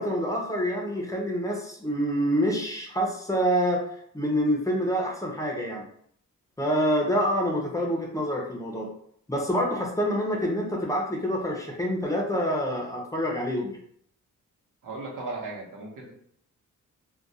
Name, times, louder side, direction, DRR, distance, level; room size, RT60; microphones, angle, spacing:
voice 1, 0.0-3.8 4.1-5.9 6.6-8.9 9.3-13.8, equal, 10° left, -1 dB, 0.5 m, -27 dB
voice 2, 14.8-16.1, right 2 dB, 90° right, -2 dB, 0.9 m, -36 dB
2.4 x 2.2 x 4.0 m, 0.66 s
wide cardioid pair, 135°, 31 cm